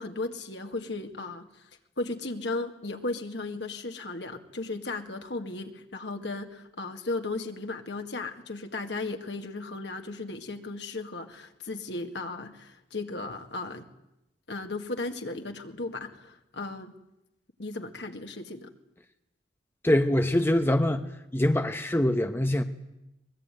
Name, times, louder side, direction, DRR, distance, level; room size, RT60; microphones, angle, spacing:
voice 1, 0.0-1.6 2.0-13.9 14.5-16.9 17.6-18.7, left 2 dB, 70° left, 5 dB, 2.1 m, -35 dB
voice 2, 19.8-21.1 21.3-22.6, left 1 dB, 15° left, 7 dB, 1.0 m, -24 dB
23.5 x 20.5 x 9.2 m, 0.92 s
head